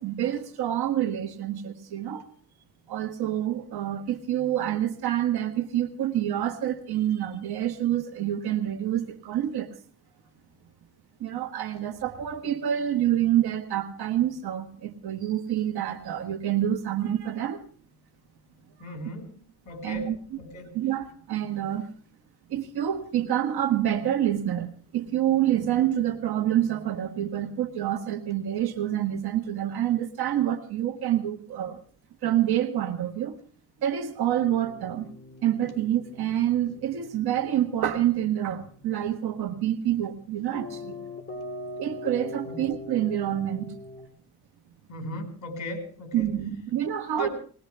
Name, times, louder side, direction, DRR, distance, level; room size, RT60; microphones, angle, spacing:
voice 1, 0.0-2.2 2.9-9.7 11.2-17.6 19.8-20.2 20.7-21.9 22.5-31.8 32.2-33.4 33.8-35.1 35.4-41.0 41.8-43.7 46.1-47.3, right 11 dB, 85° right, 7 dB, 1.6 m, -27 dB
voice 2, 18.8-19.4 19.7-20.7 42.4-42.6 44.9-46.3 47.2-47.3, left 1 dB, 50° left, 4 dB, 5.2 m, -37 dB
sound 1, 34.4-44.1, left 1 dB, 25° left, 4.4 m, -43 dB
20.0 x 20.0 x 3.4 m, 0.43 s
cardioid pair, 115°, 37 cm